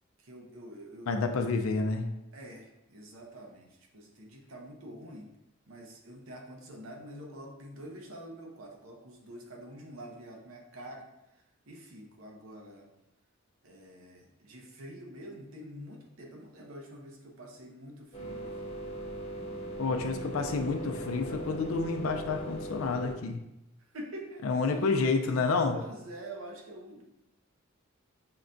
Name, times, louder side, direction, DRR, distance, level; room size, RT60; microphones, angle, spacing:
voice 1, 0.2-1.5 2.3-5.3 5.7-11.1 11.7-12.9 13.6-18.7 23.8-24.8 25.7-27.0, right 1 dB, 80° right, 1 dB, 0.7 m, -46 dB
voice 2, 1.1-2.1 19.8-23.4 24.4-25.8, left 4 dB, 80° left, 5 dB, 0.4 m, -29 dB
sound 1, 18.1-23.1, right 1 dB, 35° left, 0.7 m, -39 dB
5.8 x 2.2 x 2.5 m, 0.91 s
head